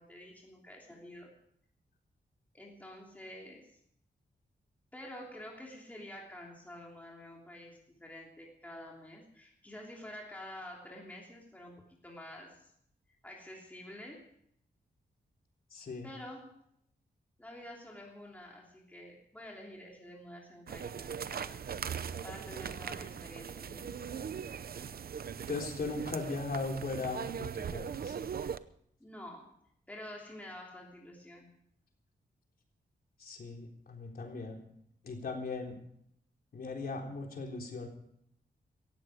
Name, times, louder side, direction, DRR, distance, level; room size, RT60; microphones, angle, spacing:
voice 1, 0.0-1.3 2.5-3.8 4.9-12.7 13.2-14.3 16.0-16.6 17.4-21.6 22.2-23.9 29.0-29.5 29.9-31.5, left 1 dB, 10° left, -2 dB, 3.1 m, -48 dB
voice 2, 15.7-16.1 25.5-28.2 33.2-34.6 35.0-35.8 36.5-37.9, left 3 dB, 55° left, 1 dB, 3.7 m, -38 dB
sound 1, 20.7-28.6, right 7 dB, 55° right, 0.7 m, -40 dB
17.5 x 15.0 x 5.0 m, 0.69 s
wide cardioid pair, 160°, 18 cm